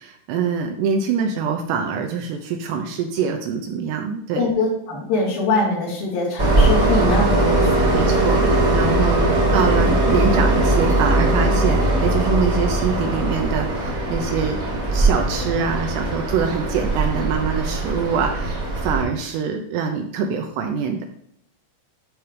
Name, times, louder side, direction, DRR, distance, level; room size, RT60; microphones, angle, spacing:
voice 1, 0.0-4.5 7.9-9.2 9.5-14.6 14.9-21.1, right 6 dB, 80° right, 4 dB, 2.6 m, -24 dB
voice 2, 4.3-8.0, left 2 dB, 80° left, -7 dB, 6.0 m, -23 dB
Train, 6.4-19.0, right 2 dB, 35° right, 1.3 m, -20 dB
11.5 x 5.8 x 3.3 m, 0.72 s
omnidirectional pair, 5.5 m